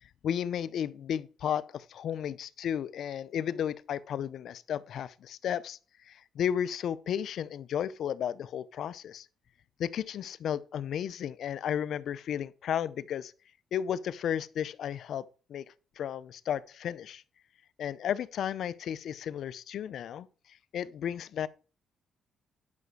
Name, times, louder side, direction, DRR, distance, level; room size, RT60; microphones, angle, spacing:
voice 1, 0.0-9.3 9.8-13.3 13.7-15.6 16.0-17.2 17.8-21.5, left 9 dB, 70° left, 0.6 m, -34 dB
11.0 x 6.1 x 4.7 m
cardioid pair, 90°, 0 cm